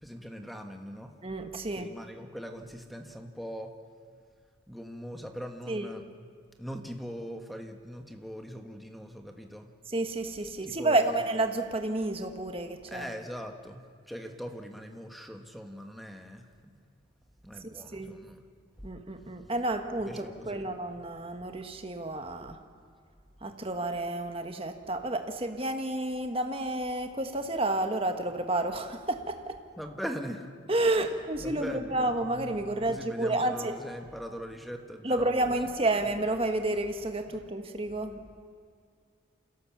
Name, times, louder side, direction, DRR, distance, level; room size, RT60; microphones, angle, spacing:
voice 1, 0.0-1.1 1.7-3.7 4.7-6.0 6.6-9.7 10.6-11.2 12.9-16.8 17.4-18.4 20.0-20.7 29.8-30.5 31.4-32.0 32.9-35.5 35.9-36.0 37.3-37.4, equal, ahead, 4 dB, 1.4 m, -41 dB
voice 2, 1.2-1.9 5.7-5.9 9.9-13.1 17.6-18.1 18.8-22.6 23.4-29.6 30.7-33.8 35.0-38.2, right 2 dB, 30° right, 6 dB, 1.5 m, -30 dB
28.0 x 17.0 x 7.3 m, 2.1 s
head